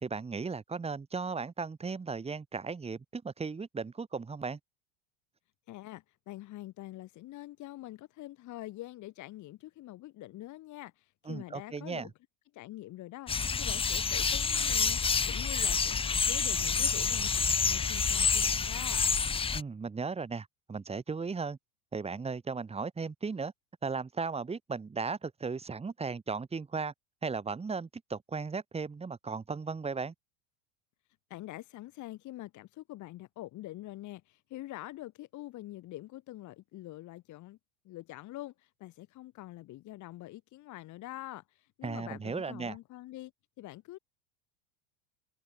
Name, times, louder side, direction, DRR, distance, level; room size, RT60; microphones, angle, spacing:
voice 1, 0.0-4.6 11.3-12.1 19.5-21.6 21.9-23.5 23.8-26.9 27.2-30.1 41.8-42.8, right 4 dB, 15° right, 2.4 m, -36 dB
voice 2, 5.7-12.1 12.5-15.0 15.2-19.0 31.3-37.6 37.8-43.3 43.6-44.0, left 16 dB, 45° left, 2.4 m, -45 dB
sound 1, 13.3-19.6, left 5 dB, 15° left, 0.8 m, -28 dB
open air
supercardioid pair, 120°, 41 cm